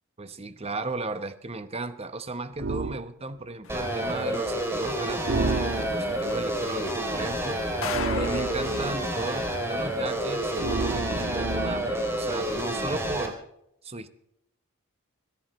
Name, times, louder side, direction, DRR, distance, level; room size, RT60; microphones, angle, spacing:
voice 1, 0.2-7.6 8.1-13.4 13.8-14.1, right 2 dB, 30° right, 11 dB, 1.0 m, -35 dB
sound 1, 2.6-3.0 5.3-6.2 7.9-9.0 10.6-12.0, right 3 dB, 60° right, 1.3 m, -30 dB
sound 2, 3.6-10.8, left 5 dB, 70° left, 1.3 m, -41 dB
sound 3, 3.7-13.3, right 1 dB, 10° right, 3.2 m, -29 dB
22.0 x 16.0 x 3.2 m, 0.79 s
head